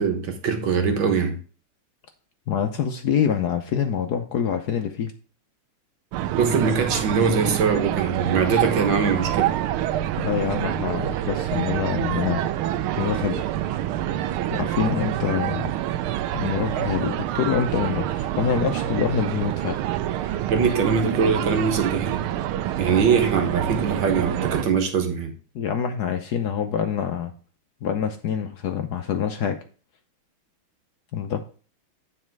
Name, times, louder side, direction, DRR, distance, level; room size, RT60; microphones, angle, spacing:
voice 1, 0.0-1.4 6.4-9.5 20.5-22.2 22.8-25.3, right 5 dB, 65° right, 5 dB, 2.0 m, -22 dB
voice 2, 2.5-5.1 10.2-12.5 13.0-13.4 14.5-15.7 16.3-19.8 20.2-20.4 25.5-27.3 27.8-29.6 31.1-31.4, left 8 dB, 65° left, 6 dB, 1.1 m, -26 dB
sound 1, 6.1-24.6, right 12 dB, 90° right, 1.5 m, -26 dB
9.6 x 4.3 x 4.6 m, 0.39 s
omnidirectional pair, 2.3 m